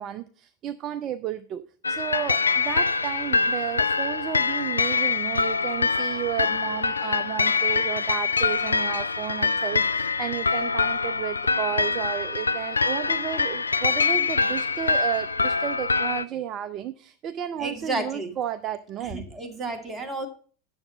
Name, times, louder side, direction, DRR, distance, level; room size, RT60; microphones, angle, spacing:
voice 1, 0.0-1.6 1.9-19.2, right 11 dB, 35° right, 11 dB, 0.5 m, -32 dB
sound 1, 1.8-16.2, left 4 dB, 80° left, 0.3 m, -25 dB
voice 2, 17.6-18.3 19.0-20.3, right 2 dB, 15° right, 5 dB, 1.9 m, -32 dB
9.7 x 7.1 x 5.2 m, 0.42 s
figure-of-eight pair, 85°, 0 cm